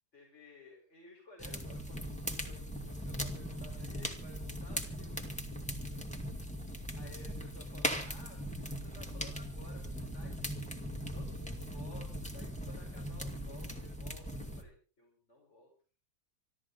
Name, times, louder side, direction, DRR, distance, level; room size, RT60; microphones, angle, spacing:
voice 1, 0.1-5.2 5.7-6.0 7.0-10.8 11.1-15.7, left 2 dB, 40° left, -1 dB, 5.4 m, -56 dB
sound 1, 1.4-14.6, equal, 5° left, 2.2 m, -39 dB
26.0 x 13.5 x 4.0 m, 0.40 s
omnidirectional pair, 1.7 m